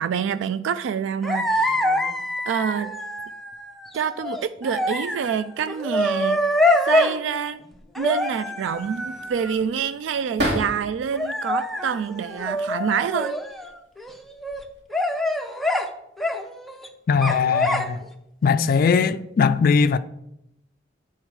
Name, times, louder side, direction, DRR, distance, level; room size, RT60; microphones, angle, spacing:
voice 1, 0.0-1.8 2.5-2.9 3.9-6.4 6.8-7.6 8.0-13.4, right 7 dB, 80° right, 0.3 m, -27 dB
sound 1, 1.2-7.2 7.9-9.6 11.1-13.7 14.0-14.6 14.9-15.9 16.2-16.9 17.2-18.0 18.4-18.9, left 1 dB, ahead, 0.6 m, -25 dB
sound 2, 8.6-11.1 11.6-12.4 13.3-13.7 14.0-14.8, right 1 dB, 65° right, 2.1 m, -32 dB
voice 2, 17.1-18.0 18.4-20.0, left 5 dB, 50° left, 0.3 m, -20 dB
8.9 x 4.4 x 4.6 m
head